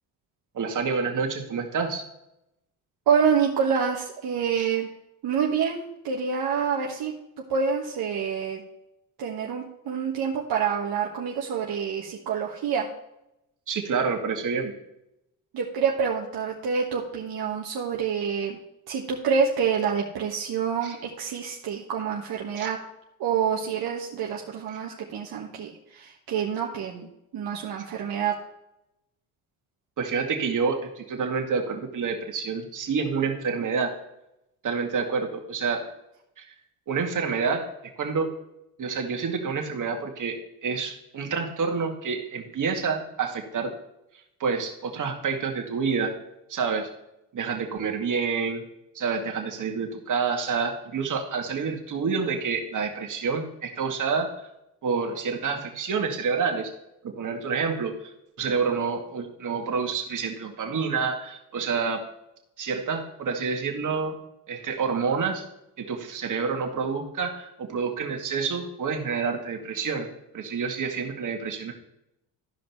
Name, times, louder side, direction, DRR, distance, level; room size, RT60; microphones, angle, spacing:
voice 1, 0.5-2.0 4.5-4.7 13.7-14.7 20.8-21.0 22.6-22.7 30.0-33.9 34.6-35.8 36.4-36.5 36.9-37.7 38.0-38.3 38.8-40.4 40.6-43.7 44.4-46.1 46.5-46.9 47.3-48.6 48.9-54.3 54.8-56.7 57.0-58.1 58.4-62.0 62.6-64.2 64.5-65.5 65.8-70.1 70.3-71.7, right 5 dB, 55° right, 2 dB, 2.1 m, -28 dB
voice 2, 3.1-4.9 5.2-7.1 7.5-8.6 9.2-12.9 15.5-18.6 18.9-22.8 23.2-27.1 27.3-28.3, right 6 dB, 70° right, -2 dB, 1.5 m, -27 dB
13.5 x 5.2 x 4.6 m, 0.85 s
cardioid pair, 80°, 38 cm